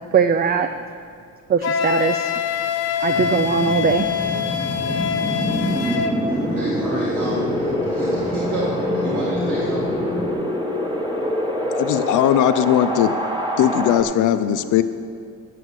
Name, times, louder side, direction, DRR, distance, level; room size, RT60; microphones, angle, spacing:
voice 1, 0.1-0.7 1.5-2.3 3.0-4.1, right 6 dB, 30° right, 9 dB, 0.4 m, -20 dB
Wind instrument woodwind instrument, 1.6-6.2, left 7 dB, 55° left, 1.0 m, -24 dB
sound 1, 3.1-10.3, left 2 dB, 20° left, 1.0 m, -31 dB
Wind, 4.1-14.0, equal, 15° right, 1.4 m, -25 dB
voice 2, 6.3-9.9, right 2 dB, 80° right, -6 dB, 2.0 m, -30 dB
voice 3, 11.7-13.1 13.6-14.8, left 11 dB, 80° left, 12 dB, 0.6 m, -18 dB
8.4 x 7.7 x 8.2 m, 2.2 s
cardioid pair, 90°, 30 cm